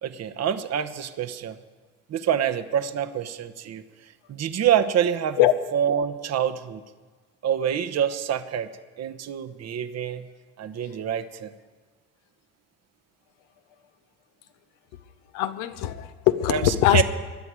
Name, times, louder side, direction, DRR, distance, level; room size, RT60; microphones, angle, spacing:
voice 1, 0.0-1.6 2.1-3.8 4.3-5.5 5.7-6.8 7.4-8.7 9.0-10.3 10.6-11.5 16.5-17.0, right 9 dB, 55° right, 11 dB, 1.1 m, -26 dB
voice 2, 15.3-17.0, left 13 dB, 80° left, 10 dB, 0.9 m, -21 dB
20.0 x 11.0 x 4.9 m, 1.4 s
hypercardioid pair, 60°, 32 cm